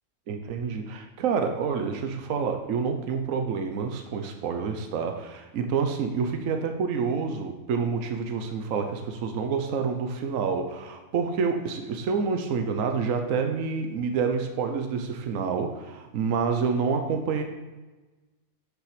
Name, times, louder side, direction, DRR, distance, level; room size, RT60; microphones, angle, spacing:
voice 1, 0.3-17.4, right 5 dB, 65° right, 5 dB, 1.2 m, -28 dB
8.6 x 6.5 x 5.0 m, 1.2 s
omnidirectional pair, 1.5 m